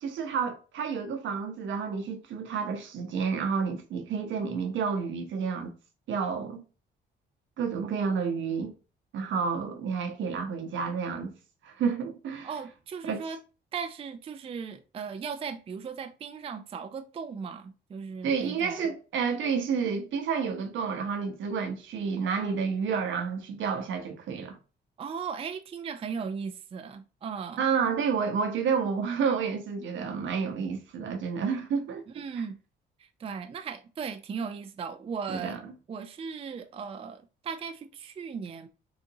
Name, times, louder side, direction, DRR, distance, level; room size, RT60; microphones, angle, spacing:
voice 1, 0.0-5.7 6.1-6.6 7.6-8.7 9.1-11.3 11.6-12.5 13.1-13.2 18.2-24.6 27.6-32.0 35.3-35.7, right 6 dB, 75° right, 0.8 m, -30 dB
voice 2, 12.4-13.4 13.7-18.8 25.0-27.6 32.1-32.6 33.0-35.6 35.9-38.7, right 6 dB, 30° right, 0.4 m, -37 dB
3.8 x 2.5 x 2.7 m
cardioid pair, 90°, 20 cm